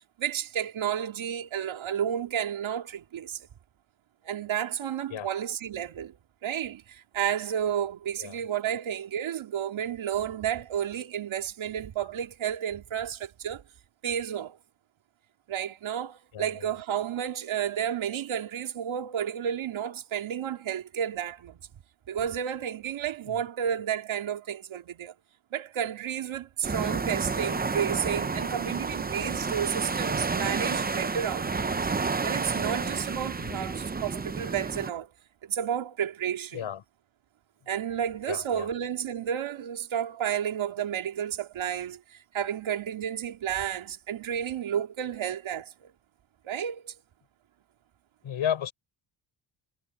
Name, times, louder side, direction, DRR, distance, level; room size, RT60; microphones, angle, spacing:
voice 1, 0.2-3.4 4.2-6.1 6.4-13.6 14.0-14.6 15.5-21.6 22.1-25.1 25.5-31.7 32.2-35.1 35.4-36.6 37.7-45.9 46.4-46.9, right 9 dB, 70° right, 2.4 m, -31 dB
voice 2, 16.3-16.7 23.3-23.4 33.4-33.6 36.5-36.8 38.3-38.7 48.2-48.7, left 9 dB, 70° left, 6.0 m, -33 dB
sound 1, 26.6-34.9, right 4 dB, 20° right, 0.8 m, -30 dB
cardioid pair, 90°, 49 cm